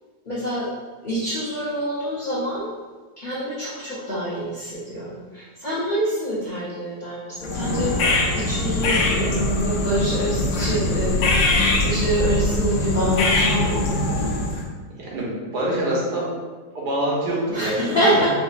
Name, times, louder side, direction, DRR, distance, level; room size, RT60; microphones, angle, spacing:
voice 1, 0.3-0.7 1.0-2.7 3.2-14.0 17.5-18.3, right 1 dB, 45° left, -10 dB, 0.6 m, -26 dB
sound 1, 7.4-14.7, left 2 dB, 80° left, 1.2 m, -22 dB
voice 2, 15.0-16.3 16.7-18.2, right 1 dB, 75° right, -5 dB, 1.5 m, -25 dB
4.8 x 2.7 x 2.4 m, 1.3 s
omnidirectional pair, 1.8 m